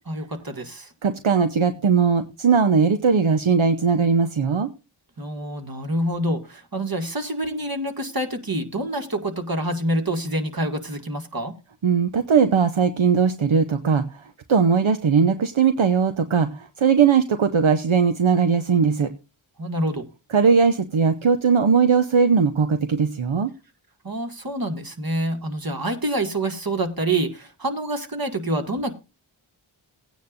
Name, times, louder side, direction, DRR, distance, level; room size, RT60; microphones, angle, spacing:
voice 1, 0.1-0.9 5.2-11.5 19.6-20.1 24.0-28.9, right 1 dB, 45° right, 5 dB, 2.2 m, -27 dB
voice 2, 1.0-4.7 11.8-14.0 14.5-19.1 20.3-23.5, right 5 dB, 70° right, 9 dB, 0.9 m, -19 dB
17.5 x 9.3 x 2.6 m, 0.29 s
wide cardioid pair, 50°, 50 cm